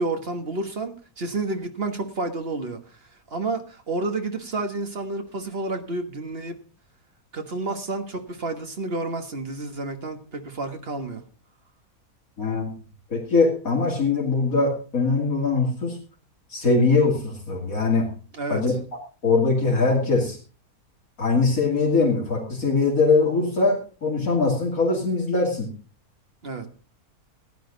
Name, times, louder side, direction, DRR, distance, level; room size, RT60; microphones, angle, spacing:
voice 1, 0.0-3.0 3.3-6.5 7.3-11.2 18.3-18.6 26.4-26.7, right 2 dB, 40° right, 1.6 m, -30 dB
voice 2, 12.4-12.7 13.1-16.0 16.5-18.1 18.5-18.7 19.2-20.4 21.2-25.7, left 3 dB, 65° left, 3.1 m, -22 dB
16.0 x 10.5 x 3.9 m
omnidirectional pair, 1.6 m